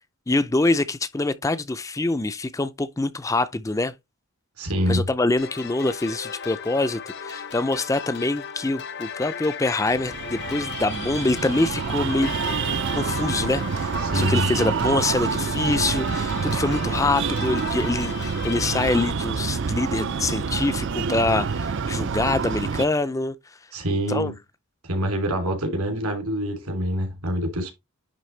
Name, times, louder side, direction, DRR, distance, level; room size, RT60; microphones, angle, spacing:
voice 1, 0.3-3.9 4.9-12.3 12.9-23.3 24.1-24.3, left 2 dB, 15° left, 0.4 m, -25 dB
voice 2, 4.6-5.0 14.0-14.5 23.7-24.3 24.9-27.7, equal, 80° right, 2.9 m, -25 dB
sound 1, 5.4-19.1, left 7 dB, 50° left, 0.8 m, -36 dB
Breathing, 9.9-22.9, right 5 dB, 55° right, 0.5 m, -27 dB
10.5 x 3.5 x 3.3 m
head